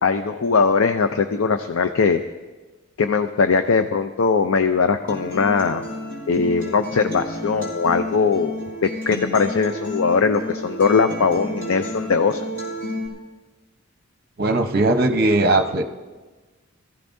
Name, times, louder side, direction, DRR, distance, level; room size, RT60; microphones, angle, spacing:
voice 1, 0.0-2.2 3.0-5.8 6.3-8.5 8.8-12.4, left 5 dB, 70° left, 8 dB, 0.5 m, -20 dB
Acoustic guitar, 5.1-13.1, left 1 dB, 40° left, 4.9 m, -31 dB
voice 2, 14.4-15.8, right 2 dB, 45° right, 6 dB, 0.9 m, -19 dB
21.0 x 15.0 x 2.6 m, 1.3 s
head